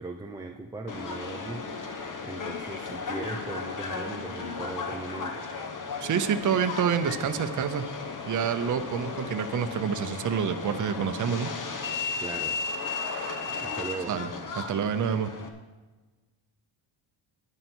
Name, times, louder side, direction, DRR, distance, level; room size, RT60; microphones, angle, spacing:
voice 1, 0.0-1.7 2.2-5.5 12.2-12.6 13.6-14.2, right 3 dB, 10° right, 3 dB, 0.5 m, -38 dB
Subway metro underground, 0.9-15.5, left 4 dB, 40° left, 1.3 m, -35 dB
voice 2, 6.0-7.9 8.3-11.5 14.1-14.3 14.6-15.3, right 7 dB, 40° right, 8 dB, 0.8 m, -27 dB
11.0 x 11.0 x 4.5 m, 1.2 s
cardioid pair, 135°, 48 cm